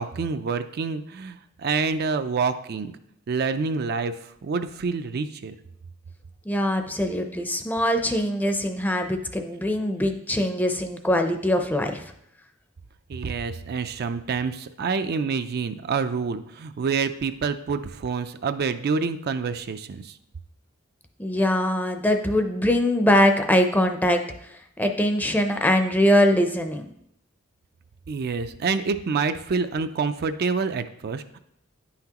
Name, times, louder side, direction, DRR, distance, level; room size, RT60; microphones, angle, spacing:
voice 1, 0.0-2.9 3.3-5.6 13.1-20.2 28.1-31.4, right 5 dB, 50° right, 9 dB, 0.4 m, -27 dB
voice 2, 6.5-12.0 21.2-24.2 24.8-26.9, left 1 dB, 10° left, 5 dB, 0.5 m, -22 dB
9.9 x 5.8 x 2.9 m, 0.74 s
head